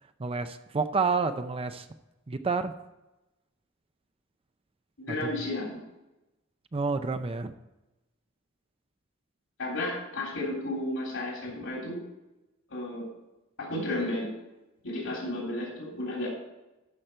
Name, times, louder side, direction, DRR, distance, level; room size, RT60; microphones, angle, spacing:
voice 1, 0.2-1.9 2.3-2.7 6.7-7.5, right 4 dB, 25° right, 9 dB, 0.5 m, -29 dB
voice 2, 5.0-5.8 9.6-12.0 12.7-13.1 13.6-14.3 14.8-16.3, left 1 dB, 65° left, -3 dB, 3.5 m, -33 dB
13.0 x 6.0 x 4.4 m, 1.0 s
head